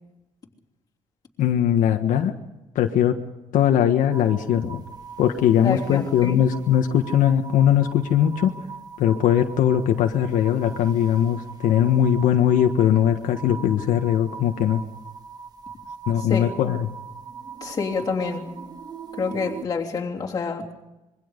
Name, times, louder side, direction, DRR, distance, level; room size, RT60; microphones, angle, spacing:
voice 1, 1.4-2.3 2.7-3.1 3.5-4.8 5.2-8.5 9.0-14.8 16.1-16.9, left 10 dB, 75° left, 5 dB, 1.5 m, -20 dB
sound 1, 4.1-19.7, right 6 dB, 30° right, 1.4 m, -41 dB
voice 2, 5.6-6.4 16.3-16.5 17.6-18.5 19.1-20.7, left 5 dB, 30° left, -1 dB, 3.2 m, -27 dB
26.5 x 23.0 x 5.3 m, 1.0 s
cardioid pair, 170°, 14 cm